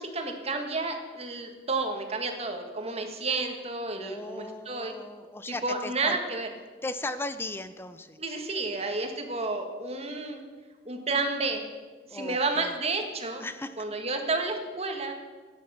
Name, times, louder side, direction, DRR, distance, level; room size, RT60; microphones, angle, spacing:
voice 1, 0.0-4.9 5.6-6.5 8.2-10.4 10.8-11.6 12.1-13.4 13.8-15.1, right 3 dB, 35° right, 4 dB, 1.7 m, -31 dB
voice 2, 3.9-6.2 6.8-8.2 12.1-12.7 13.4-13.9, left 2 dB, 15° left, 12 dB, 0.4 m, -37 dB
12.0 x 9.7 x 6.8 m, 1.4 s
head